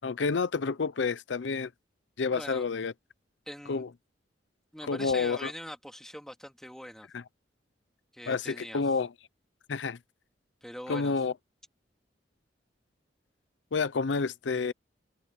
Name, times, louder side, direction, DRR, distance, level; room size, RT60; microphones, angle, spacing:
voice 1, 0.0-1.7 2.2-2.9 3.7-3.9 4.8-5.5 7.1-7.2 8.3-9.1 9.7-10.0 10.9-11.3 13.7-14.7, left 4 dB, 80° left, 0.6 m, -29 dB
voice 2, 2.3-2.6 3.5-3.9 4.7-7.1 8.1-8.8 10.6-11.1, equal, 5° left, 3.0 m, -42 dB
head